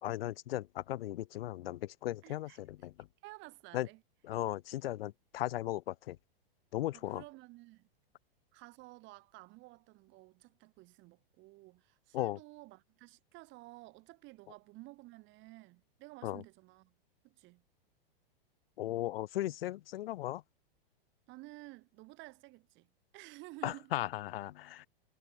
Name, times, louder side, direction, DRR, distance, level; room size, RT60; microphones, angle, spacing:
voice 1, 0.0-3.1 3.7-3.9 4.2-6.2 6.7-7.2 12.1-12.4 16.2-16.4 18.8-20.4 23.6-24.9, left 14 dB, 75° left, 0.5 m, -37 dB
voice 2, 2.2-2.6 3.2-4.0 6.9-7.9 8.5-16.9 17.2-17.6 21.3-23.9, right 22 dB, 40° right, 7.2 m, -53 dB
hypercardioid pair, 125°, 30 cm